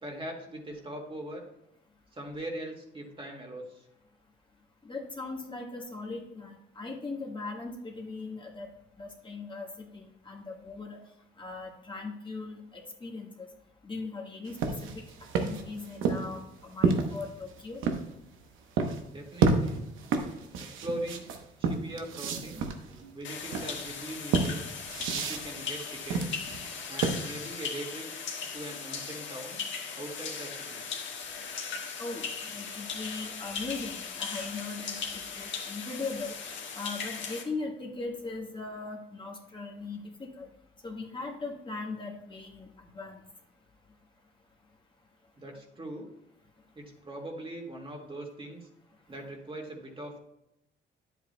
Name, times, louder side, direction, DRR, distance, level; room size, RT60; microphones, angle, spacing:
voice 1, 0.0-1.4 2.1-3.8 19.1-19.8 20.6-21.3 21.6-22.7 23.1-24.7 25.1-26.4 26.9-28.1 28.5-29.6 30.0-30.8 45.4-46.1 46.7-48.7 49.1-50.2, right 1 dB, 25° right, 0 dB, 1.9 m, -41 dB
voice 2, 4.8-8.7 9.0-11.0 11.4-13.5 13.8-15.0 15.4-17.8 32.0-36.3 36.7-40.5 40.8-43.1, left 3 dB, 25° left, -1 dB, 1.6 m, -39 dB
sound 1, 14.5-18.1 18.8-19.0 19.4-27.5, right 4 dB, 90° right, 0.9 m, -30 dB
sound 2, 23.2-37.4, left 5 dB, 70° left, 1.6 m, -38 dB
9.6 x 8.1 x 2.2 m, 0.84 s
cardioid pair, 90°, 20 cm